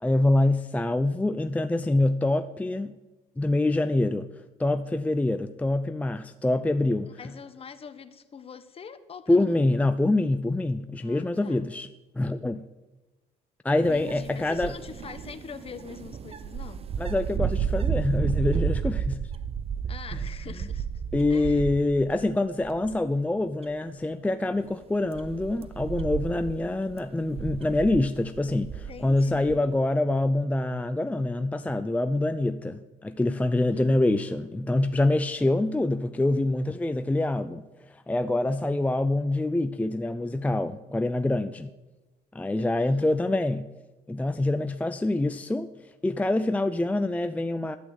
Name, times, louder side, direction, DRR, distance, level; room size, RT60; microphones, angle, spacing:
voice 1, 0.0-2.9 3.4-4.3 4.6-7.1 9.3-11.9 12.2-12.6 13.6-14.7 17.0-19.3 21.1-41.7 42.3-43.7 44.1-45.7 46.0-47.8, left 2 dB, 10° left, 0.5 m, -25 dB
voice 2, 7.1-9.9 11.0-11.7 13.9-16.9 19.9-21.0 21.3-21.7 28.9-29.8 33.7-34.1 42.6-43.2, left 6 dB, 35° left, 1.2 m, -44 dB
sound 1, 13.8-22.3 22.6-23.1 23.6-23.7 24.6-29.6, right 7 dB, 35° right, 0.9 m, -32 dB
12.0 x 11.0 x 8.1 m
cardioid pair, 110°, 17 cm